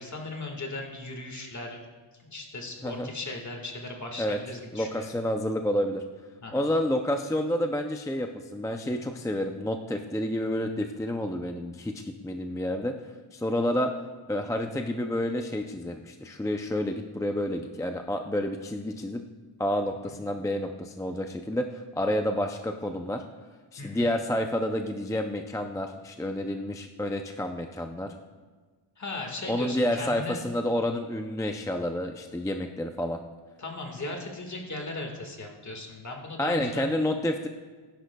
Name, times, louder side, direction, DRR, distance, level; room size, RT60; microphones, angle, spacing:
voice 1, 0.0-1.8 2.2-5.1 6.4-6.7 20.1-20.2 23.8-24.1 29.0-30.4 33.6-36.9, left 2 dB, 35° left, 2 dB, 1.6 m, -37 dB
voice 2, 4.7-6.0 6.5-12.9 13.3-13.9 14.3-19.2 19.6-23.2 23.7-28.1 29.5-33.2 36.4-37.5, left 1 dB, 10° left, 5 dB, 0.3 m, -29 dB
17.0 x 10.0 x 2.2 m, 1.4 s
wide cardioid pair, 150°, 49 cm